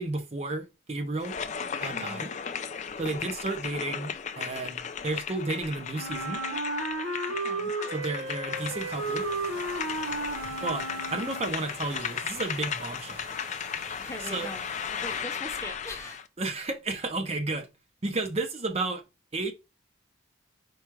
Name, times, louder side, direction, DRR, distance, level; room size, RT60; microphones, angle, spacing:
voice 1, 0.0-1.4 1.8-2.3 3.0-6.4 7.9-9.3 10.4-13.2 14.3-14.5 16.4-17.7 18.0-19.0 19.3-19.5, right 2 dB, 30° right, 0.5 m, -32 dB
sound 1, 1.2-16.3, left 7 dB, 35° left, 0.3 m, -36 dB
voice 2, 1.9-2.2 7.3-7.7 14.0-16.2, left 1 dB, 15° left, 0.7 m, -41 dB
Wind instrument woodwind instrument, 5.9-11.7, right 2 dB, 75° right, 0.7 m, -33 dB
sound 2, 8.5-15.2, right 2 dB, 45° right, 1.0 m, -48 dB
4.6 x 2.4 x 4.5 m
head